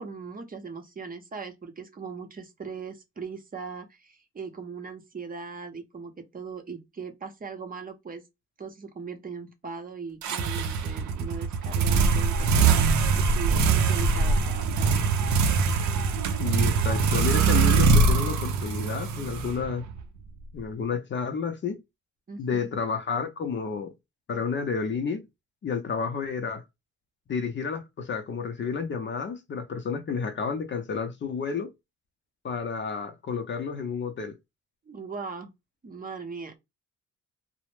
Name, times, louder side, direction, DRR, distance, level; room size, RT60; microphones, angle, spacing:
voice 1, 0.0-8.2 8.6-12.8 13.1-15.1 22.3-22.7 34.9-35.5 35.8-36.6, right 5 dB, 30° right, 0.7 m, -39 dB
sound 1, 10.2-20.0, right 4 dB, 70° right, 0.5 m, -23 dB
voice 2, 16.3-19.9 20.5-21.8 22.4-23.9 24.3-25.2 25.6-26.6 27.3-31.7 32.4-34.4, left 5 dB, 40° left, 0.5 m, -31 dB
2.1 x 2.0 x 3.0 m
cardioid pair, 90°, 30 cm